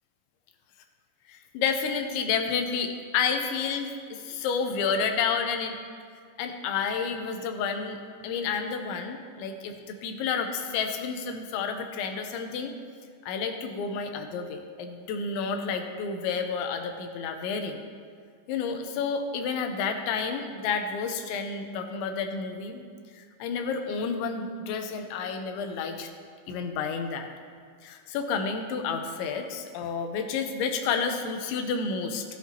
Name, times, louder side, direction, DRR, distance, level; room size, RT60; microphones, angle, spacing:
voice 1, 1.3-5.8 6.4-12.7 13.3-17.8 18.5-22.8 23.2-26.1 26.5-27.3 27.8-32.2, left 5 dB, 85° left, 5 dB, 3.2 m, -30 dB
15.5 x 12.0 x 2.9 m, 2.1 s
omnidirectional pair, 5.2 m